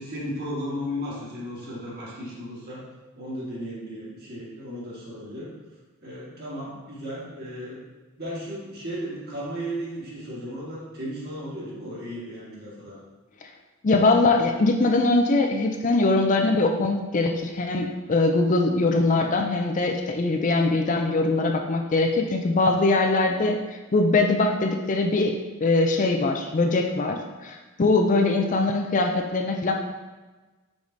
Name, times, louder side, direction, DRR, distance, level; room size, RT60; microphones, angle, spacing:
voice 1, 0.0-2.8 3.2-5.5 6.0-7.8 8.2-13.0, equal, 45° right, -6 dB, 1.8 m, -35 dB
voice 2, 13.8-23.6 23.9-25.3 25.6-29.7, left 3 dB, 35° left, 3 dB, 0.4 m, -22 dB
5.2 x 4.8 x 3.9 m, 1.2 s
head